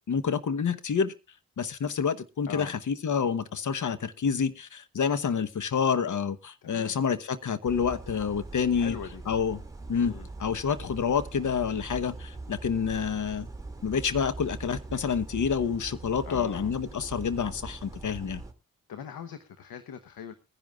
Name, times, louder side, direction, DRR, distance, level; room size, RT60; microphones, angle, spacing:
voice 1, 0.1-1.1 1.6-8.9 9.3-9.6 9.9-13.5 13.8-18.4, left 6 dB, 60° left, 13 dB, 1.1 m, -28 dB
voice 2, 6.6-6.9 8.7-9.2 10.0-10.3 16.2-16.7 18.9-20.3, left 8 dB, 80° left, 10 dB, 1.0 m, -41 dB
sound 1, 7.6-18.5, right 3 dB, 10° right, 2.3 m, -42 dB
22.0 x 10.5 x 2.4 m, 0.29 s
cardioid pair, 60°, 35 cm